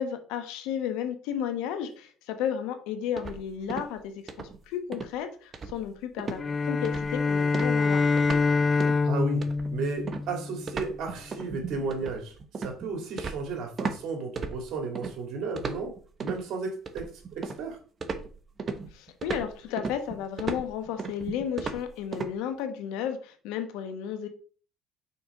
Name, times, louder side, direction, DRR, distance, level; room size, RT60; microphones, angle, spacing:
voice 1, 0.0-8.2 18.9-24.3, left 9 dB, 85° left, 1.1 m, -33 dB
sound 1, 3.2-4.0 4.3-4.6 4.9-5.2 5.5-5.9 6.2-6.4 6.8-7.2 7.5-8.5 8.8-9.0 9.4-14.0 14.4-15.1 15.6-16.4 16.9-17.7 18.0-22.3, right 4 dB, 35° right, 0.8 m, -36 dB
sound 2, 6.4-10.8, left 4 dB, 25° left, 0.4 m, -25 dB
voice 2, 9.0-9.4 9.7-15.9 16.2-17.8, right 4 dB, 60° right, 2.2 m, -34 dB
5.8 x 3.9 x 4.7 m
cardioid pair, 110°, 0 cm